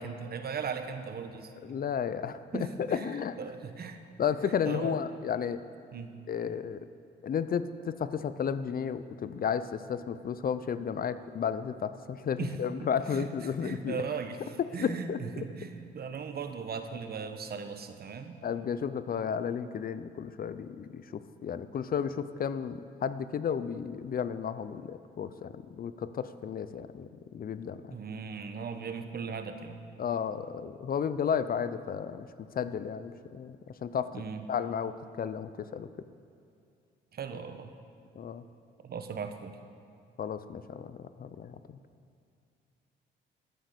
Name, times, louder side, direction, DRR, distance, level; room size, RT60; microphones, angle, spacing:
voice 1, 0.0-1.5 2.5-3.1 3.4-4.0 4.6-5.0 5.9-6.2 12.4-12.6 12.8-18.4 27.9-29.8 34.1-34.4 37.1-37.7 38.8-39.6, right 6 dB, 50° right, 8 dB, 1.1 m, -38 dB
voice 2, 1.6-3.4 4.2-5.6 6.3-6.9 7.2-14.0 14.6-15.5 18.4-28.0 30.0-32.3 32.5-34.1 34.5-35.9 38.2-38.4 40.2-41.8, left 7 dB, 45° left, 13 dB, 0.6 m, -33 dB
14.0 x 9.8 x 6.8 m, 2.5 s
cardioid pair, 90°, 20 cm